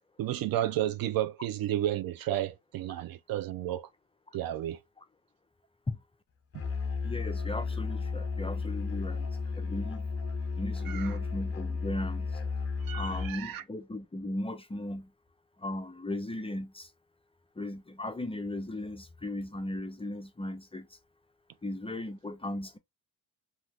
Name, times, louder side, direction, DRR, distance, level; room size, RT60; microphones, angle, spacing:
voice 1, 0.2-3.9 4.3-4.8 10.9-11.1 12.9-13.6, right 12 dB, 55° right, 0.4 m, -32 dB
Musical instrument, 6.5-13.4, left 4 dB, 30° left, 1.1 m, -33 dB
voice 2, 7.0-9.3 9.6-10.1 10.6-12.3 12.9-15.1 15.6-16.9 17.6-20.9 21.6-22.8, left 1 dB, 15° left, 0.5 m, -36 dB
2.8 x 2.2 x 3.4 m
supercardioid pair, 80°, 44 cm